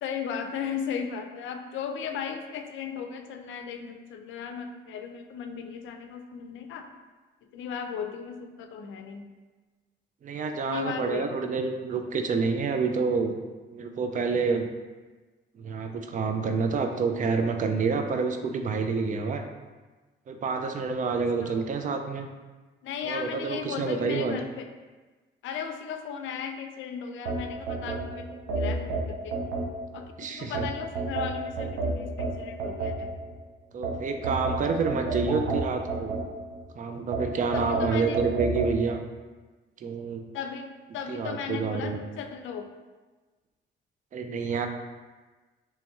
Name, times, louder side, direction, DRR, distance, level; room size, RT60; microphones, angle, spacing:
voice 1, 0.0-6.9 7.4-9.3 10.6-11.5 21.4-21.6 22.8-24.7 25.4-29.4 29.9-33.1 37.4-38.2 40.3-42.7, left 7 dB, 75° left, 6 dB, 0.4 m, -36 dB
voice 2, 10.2-13.3 13.7-14.7 15.6-19.4 20.3-22.3 23.1-24.3 30.2-30.5 33.7-36.2 36.7-39.0 39.8-40.2 41.1-42.0 44.1-44.7, right 4 dB, 40° right, 5 dB, 0.4 m, -28 dB
sound 1, 27.3-30.0 30.5-33.3 33.8-36.6 37.1-38.8, right 3 dB, 90° right, 0.7 m, -30 dB
3.1 x 2.9 x 3.4 m, 1.3 s
cardioid pair, 90°, 20 cm